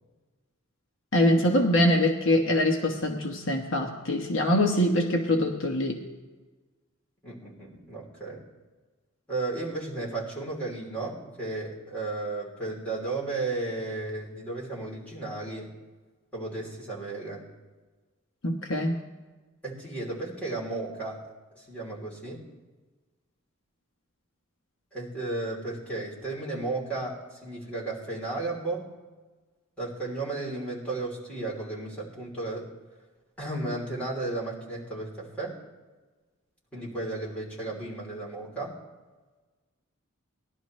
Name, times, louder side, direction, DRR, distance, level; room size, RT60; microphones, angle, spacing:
voice 1, 1.1-6.0 18.4-19.0, left 1 dB, 60° left, 2 dB, 1.1 m, -24 dB
voice 2, 7.2-8.4 9.3-15.7 16.3-17.4 19.6-21.2 21.5-22.4 24.9-28.9 29.8-32.7 33.4-35.6 36.7-38.7, right 2 dB, 5° left, -6 dB, 3.3 m, -34 dB
19.0 x 11.5 x 3.2 m, 1.3 s
head